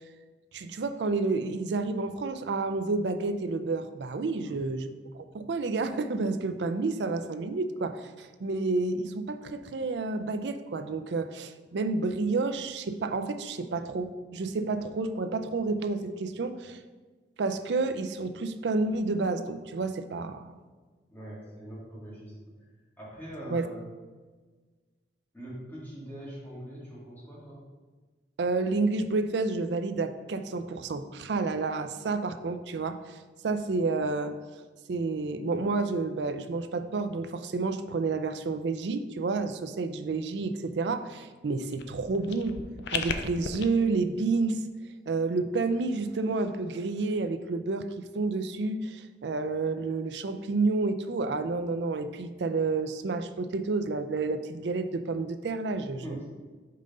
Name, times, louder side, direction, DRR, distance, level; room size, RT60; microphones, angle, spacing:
voice 1, 0.5-4.8 5.1-16.8 17.4-20.5 23.5-23.7 28.4-33.2 33.4-34.3 34.9-42.6 42.9-44.6 45.1-56.2, right 3 dB, 80° right, 10 dB, 0.4 m, -30 dB
voice 2, 4.4-4.9 21.1-22.3 23.0-23.8 25.3-27.6 56.0-56.3, right 1 dB, 10° left, -7 dB, 1.9 m, -42 dB
sound 1, 41.7-43.7, left 5 dB, 75° left, 0.5 m, -35 dB
5.6 x 3.8 x 5.2 m, 1.4 s
head